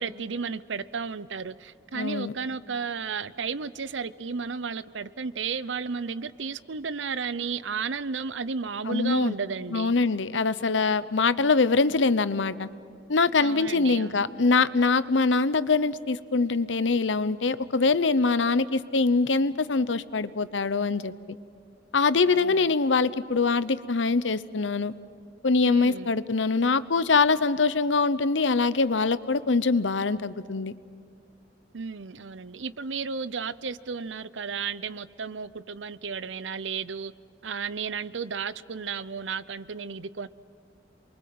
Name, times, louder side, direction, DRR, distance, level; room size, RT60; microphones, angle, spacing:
voice 1, 0.0-9.9 13.4-14.2 22.2-22.7 25.6-26.1 31.7-37.1 37.4-40.3, right 5 dB, 90° right, 17 dB, 0.7 m, -33 dB
voice 2, 1.9-2.3 8.9-9.3 9.7-12.7 13.1-21.1 21.9-24.9 25.4-30.7, left 4 dB, 85° left, 15 dB, 0.9 m, -23 dB
28.0 x 23.0 x 7.7 m, 2.3 s
head